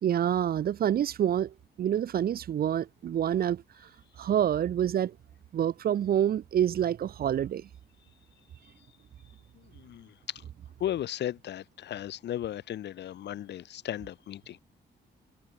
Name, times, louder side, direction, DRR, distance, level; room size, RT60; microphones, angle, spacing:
voice 1, 0.0-3.6 4.2-5.1 5.5-7.7, right 10 dB, 60° right, 1.3 m, -27 dB
voice 2, 9.5-10.4 10.8-14.6, left 12 dB, 80° left, 4.2 m, -36 dB
cardioid pair, 140°, 18 cm